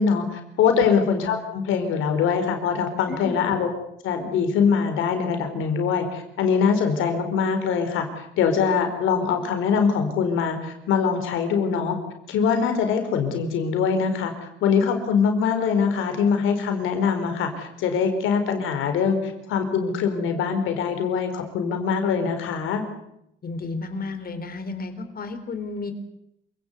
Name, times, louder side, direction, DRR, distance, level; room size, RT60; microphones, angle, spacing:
voice 1, 0.0-3.7 4.0-12.0 12.3-22.8, left 6 dB, 90° left, 6 dB, 4.6 m, -23 dB
voice 2, 23.4-25.9, left 3 dB, 50° left, 9 dB, 4.2 m, -32 dB
27.5 x 17.5 x 8.3 m, 0.79 s
cardioid pair, 90°, 20 cm